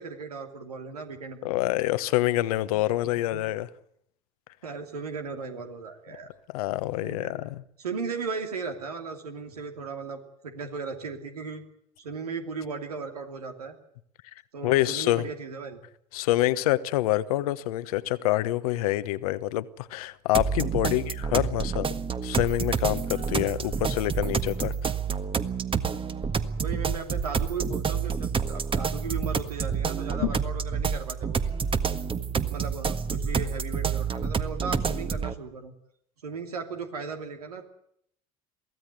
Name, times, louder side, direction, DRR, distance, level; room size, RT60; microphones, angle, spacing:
voice 1, 0.0-1.5 2.7-3.4 4.6-6.3 7.0-7.5 7.8-11.6 12.0-13.8 14.5-15.8 20.7-21.2 26.6-31.5 32.1-35.7 36.2-37.6, right 4 dB, 90° right, 2.8 m, -37 dB
voice 2, 1.4-3.7 6.5-7.6 14.6-15.3 16.1-21.9 22.2-24.9 30.2-30.3, left 16 dB, 75° left, 1.1 m, -26 dB
sound 1, 20.3-35.3, right 6 dB, 30° right, 1.6 m, -28 dB
23.0 x 16.0 x 9.3 m
hypercardioid pair, 70°, 19 cm